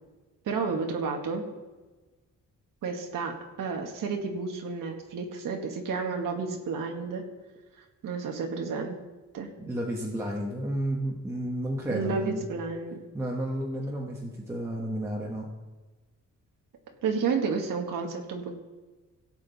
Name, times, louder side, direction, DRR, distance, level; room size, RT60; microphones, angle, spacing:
voice 1, 0.4-1.4 2.8-7.2 8.0-9.0 9.3-9.5 11.9-13.0 17.0-18.5, right 5 dB, 90° right, 2 dB, 1.5 m, -31 dB
voice 2, 9.6-12.4 13.1-15.5, right 1 dB, 10° right, -3 dB, 1.1 m, -32 dB
17.0 x 7.5 x 4.0 m, 1.2 s
wide cardioid pair, 170°, 32 cm